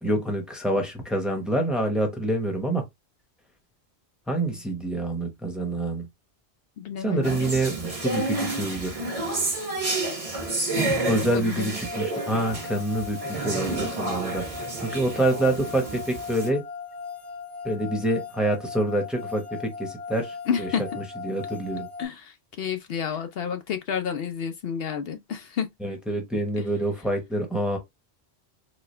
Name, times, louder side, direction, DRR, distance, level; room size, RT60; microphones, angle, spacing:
voice 1, 0.0-2.8 4.3-6.1 7.0-8.9 11.1-14.4 14.8-16.6 17.6-21.9 25.8-27.8, right 1 dB, ahead, 0.9 m, -27 dB
voice 2, 6.8-7.4 11.2-11.7 20.5-20.8 22.0-25.7, left 7 dB, 65° left, 0.7 m, -30 dB
sound 1, 7.2-16.5, right 2 dB, 35° right, 1.1 m, -30 dB
sound 2, 11.8-22.1, left 5 dB, 30° left, 0.9 m, -38 dB
4.1 x 2.3 x 3.2 m
omnidirectional pair, 1.1 m